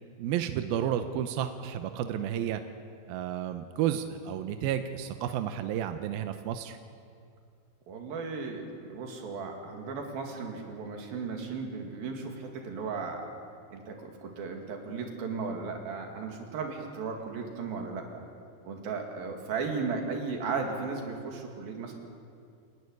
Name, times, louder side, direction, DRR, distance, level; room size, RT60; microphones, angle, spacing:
voice 1, 0.2-2.6 3.1-6.8, right 10 dB, 80° right, 8 dB, 2.3 m, -31 dB
voice 2, 7.9-13.2 13.7-18.2 18.7-22.0, right 4 dB, 60° right, 2 dB, 3.9 m, -36 dB
29.5 x 11.0 x 9.7 m, 2.4 s
omnidirectional pair, 5.0 m